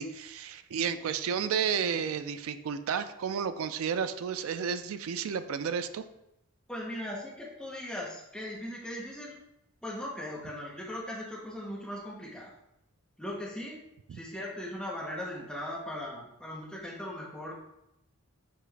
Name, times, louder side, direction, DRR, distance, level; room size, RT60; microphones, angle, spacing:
voice 1, 0.0-6.0 14.1-14.2, right 7 dB, 65° right, 11 dB, 0.3 m, -32 dB
voice 2, 6.7-9.4 9.8-12.5 13.2-13.8 14.1-17.5, left 1 dB, 5° left, -4 dB, 0.8 m, -39 dB
6.4 x 2.5 x 3.4 m, 0.84 s
head